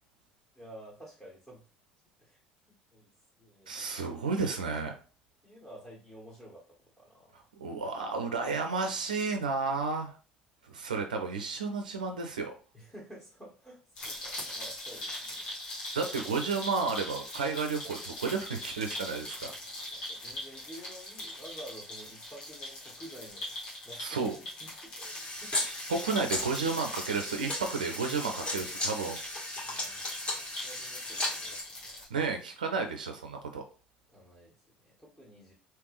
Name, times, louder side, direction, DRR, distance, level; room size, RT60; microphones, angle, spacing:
voice 1, 0.5-1.6 2.2-2.4 2.9-3.1 3.4-3.7 5.4-6.6 7.0-7.4 12.7-13.8 14.0-15.6 19.5-23.5 23.8-24.3 24.6-25.5 29.6-30.0 30.3-32.0 34.1-35.5, right 1 dB, 10° left, -5 dB, 1.5 m, -50 dB
voice 2, 3.7-5.0 7.6-10.1 10.7-12.5 15.9-19.5 24.0-24.3 25.9-29.2 32.1-33.6, right 4 dB, 80° right, 5 dB, 0.4 m, -32 dB
sound 1, 14.0-32.1, left 1 dB, 75° left, 1.5 m, -42 dB
sound 2, 25.0-31.6, left 1 dB, 25° left, 1.7 m, -36 dB
3.4 x 3.0 x 3.1 m, 0.37 s
figure-of-eight pair, 60°, 4 cm